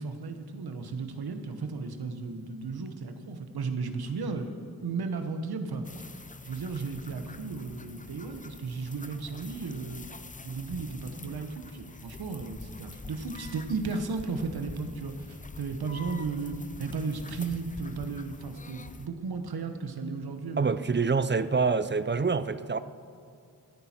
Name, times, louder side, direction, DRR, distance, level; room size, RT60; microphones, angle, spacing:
voice 1, 0.0-5.8 6.4-10.0 10.4-20.9, right 4 dB, 80° right, 1.1 m, -35 dB
sound 1, 5.8-19.1, left 3 dB, 20° left, 0.6 m, -46 dB
voice 2, 20.6-22.8, right 4 dB, 30° right, 0.6 m, -26 dB
15.5 x 10.5 x 4.4 m
cardioid pair, 45°, 37 cm